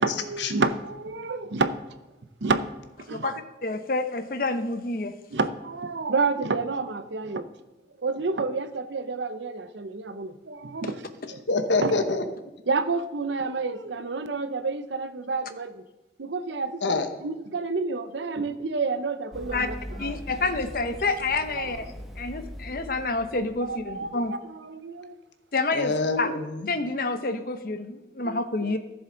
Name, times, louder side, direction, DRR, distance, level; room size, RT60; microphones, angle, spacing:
voice 1, 0.0-1.7 2.4-2.6 3.1-3.3 5.3-7.5 8.0-11.0 11.3-11.4 11.8-11.9 12.7-15.8 16.2-20.2 21.5-21.9 23.6-25.1 28.2-28.7, right 4 dB, 85° right, 11 dB, 0.7 m, -29 dB
voice 2, 3.1-5.1 19.5-19.7 20.0-21.9 22.2-24.3 25.5-26.3 26.7-28.8, left 3 dB, 50° left, 9 dB, 0.8 m, -28 dB
voice 3, 11.5-12.2 16.8-17.1 25.7-26.7, left 3 dB, 85° left, 8 dB, 1.0 m, -25 dB
Run, 19.3-24.1, equal, ahead, 0.9 m, -41 dB
14.0 x 7.1 x 3.9 m, 1.1 s
head